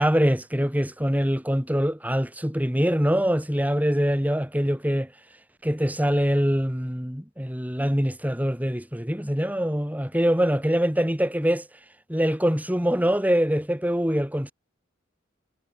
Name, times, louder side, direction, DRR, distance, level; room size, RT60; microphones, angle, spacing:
voice 1, 0.0-5.1 5.6-11.7 12.1-14.5, equal, 10° right, 3.2 m, -24 dB
head